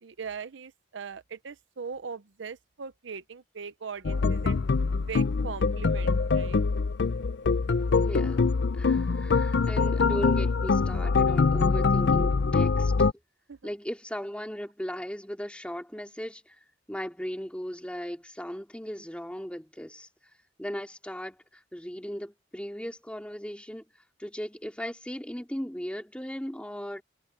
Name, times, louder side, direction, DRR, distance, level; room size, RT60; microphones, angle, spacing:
voice 1, 0.0-4.6 5.1-6.6 13.5-13.7, right 5 dB, 75° right, 0.7 m, -40 dB
sound 1, 4.0-13.1, left 4 dB, 65° left, 0.5 m, -24 dB
voice 2, 7.9-8.5 8.7-13.1 13.6-16.6 16.9-20.1 20.6-23.8 24.2-27.0, equal, 5° left, 2.5 m, -37 dB
head